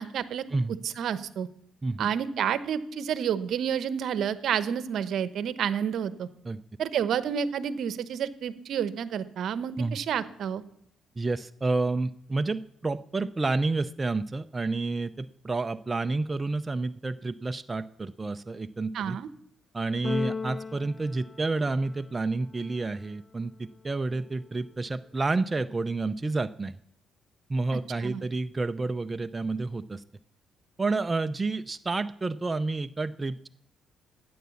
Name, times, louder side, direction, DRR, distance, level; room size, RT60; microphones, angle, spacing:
voice 1, 0.0-0.4 0.8-1.5 2.0-6.3 6.8-10.6 18.9-19.3 27.7-28.2, right 8 dB, 70° right, 14 dB, 0.9 m, -30 dB
voice 2, 11.2-19.2 19.7-26.8 27.5-30.0 30.8-33.5, right 3 dB, 25° right, 9 dB, 0.5 m, -30 dB
Keyboard (musical), 20.0-22.1, left 4 dB, 35° left, 0.4 m, -35 dB
13.5 x 9.5 x 7.1 m, 0.73 s
cardioid pair, 90°, 0 cm